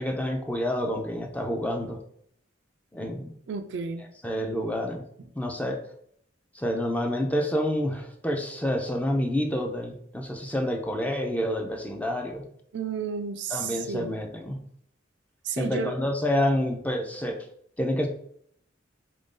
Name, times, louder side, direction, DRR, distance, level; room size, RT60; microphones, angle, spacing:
voice 1, 0.0-2.0 2.9-3.3 4.2-5.0 5.4-5.8 6.5-12.4 13.5-14.6 15.5-17.4 17.8-18.1, left 1 dB, 10° left, 3 dB, 0.4 m, -28 dB
voice 2, 3.5-4.0 5.2-5.3 12.7-14.1 15.4-16.0, right 6 dB, 65° right, 8 dB, 0.4 m, -32 dB
3.5 x 2.6 x 3.6 m, 0.67 s
head